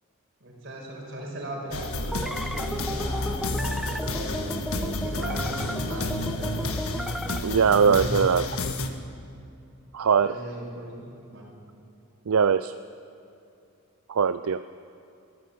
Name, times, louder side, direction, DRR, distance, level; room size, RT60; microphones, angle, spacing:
voice 1, 0.4-6.7 10.2-11.5, right 1 dB, 50° right, -1 dB, 5.5 m, -38 dB
sound 1, 1.7-8.9, left 2 dB, 75° left, 1.6 m, -30 dB
sound 2, 2.1-7.4, equal, ahead, 0.7 m, -34 dB
voice 2, 7.4-8.6 9.9-10.3 12.3-12.7 14.1-14.6, right 6 dB, 75° right, 12 dB, 0.5 m, -21 dB
23.5 x 14.5 x 8.5 m, 2.6 s
head